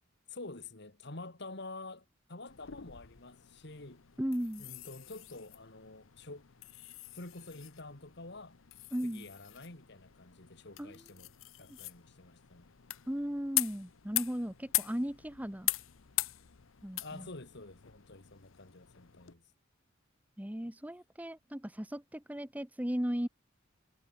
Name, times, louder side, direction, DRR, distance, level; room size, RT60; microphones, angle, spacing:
voice 1, 0.3-4.1 4.6-6.5 7.1-8.6 9.0-11.3 11.6-12.7 17.0-19.4 20.6-20.7, left 2 dB, 60° left, 2.6 m, -48 dB
sound 1, 2.5-19.3, left 17 dB, 85° left, 0.8 m, -41 dB
voice 2, 4.2-4.7 8.9-9.3 10.8-11.0 11.7-11.8 13.1-15.7 16.8-17.3 20.4-23.3, equal, 10° right, 1.1 m, -36 dB
head